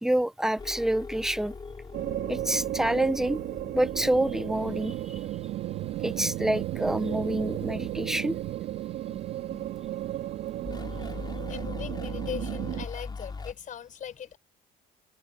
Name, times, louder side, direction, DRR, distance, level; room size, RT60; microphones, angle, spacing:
voice 1, 0.0-1.6 2.3-3.4 3.7-5.2 6.0-8.4 9.1-9.2 9.5-9.7, right 1 dB, 5° right, 0.7 m, -27 dB
sound 1, 0.6-7.0 10.6-13.5, left 4 dB, 25° left, 4.2 m, -41 dB
sound 2, 1.9-12.9, right 14 dB, 75° right, 3.0 m, -34 dB
sound 3, 4.5-11.4, right 6 dB, 35° right, 6.9 m, -53 dB
voice 2, 11.5-14.4, left 9 dB, 50° left, 5.3 m, -39 dB
cardioid pair, 110°, 17 cm